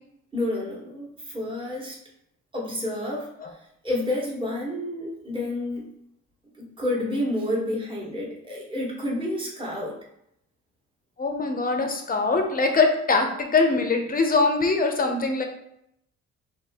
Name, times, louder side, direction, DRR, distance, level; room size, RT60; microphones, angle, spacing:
voice 1, 0.3-1.1 1.3-2.0 2.5-3.3 3.8-5.8 6.6-9.9, left 1 dB, 15° right, -4 dB, 1.5 m, -29 dB
voice 2, 11.2-15.4, left 3 dB, 30° left, 4 dB, 0.8 m, -22 dB
4.2 x 2.8 x 3.6 m, 0.77 s
cardioid pair, 90°, 30 cm